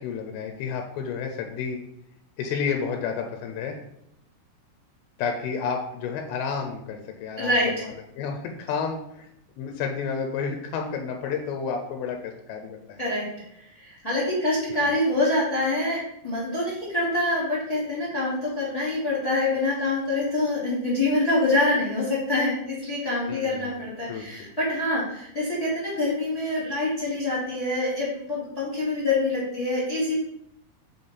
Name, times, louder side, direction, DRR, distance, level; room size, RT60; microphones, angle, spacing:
voice 1, 0.0-1.8 2.4-3.8 5.2-9.3 9.6-13.0 23.3-23.8 24.1-24.5, left 6 dB, 85° left, 4 dB, 2.6 m, -31 dB
voice 2, 7.4-7.9 13.0-13.3 13.5-30.1, left 2 dB, 15° left, -8 dB, 1.5 m, -25 dB
6.7 x 3.5 x 4.1 m, 0.77 s
omnidirectional pair, 4.5 m